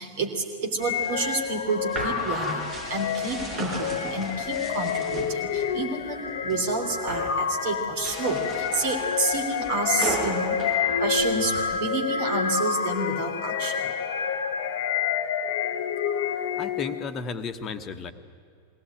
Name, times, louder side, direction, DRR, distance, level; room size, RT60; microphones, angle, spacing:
voice 1, 0.0-10.6 11.0-13.9, right 3 dB, 50° right, 3 dB, 3.2 m, -29 dB
sound 1, 0.8-17.0, left 7 dB, 55° left, 1.2 m, -28 dB
sound 2, 0.8-5.7 6.1-6.6 6.9-7.4 7.9-11.8, right 2 dB, 30° right, 5.4 m, -36 dB
voice 2, 16.6-18.1, left 5 dB, 30° left, 8 dB, 1.2 m, -33 dB
21.5 x 17.0 x 9.2 m, 2.3 s
figure-of-eight pair, 90°, 0 cm